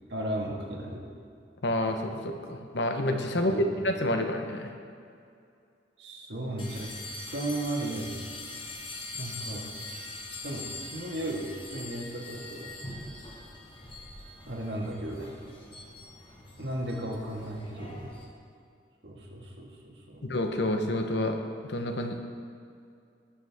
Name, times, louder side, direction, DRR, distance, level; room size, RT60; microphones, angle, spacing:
voice 1, 0.1-1.0 3.3-3.7 6.0-6.9 7.3-8.1 9.1-9.7 10.4-12.7 14.4-15.3 16.6-18.1 19.0-20.2, right 1 dB, 70° right, -1 dB, 1.8 m, -35 dB
voice 2, 1.6-4.7 20.2-21.4 21.6-22.2, left 1 dB, 75° left, 5 dB, 1.0 m, -28 dB
sound 1, 6.6-18.3, left 2 dB, 30° left, 1.5 m, -43 dB
19.0 x 6.5 x 3.6 m, 2.4 s
head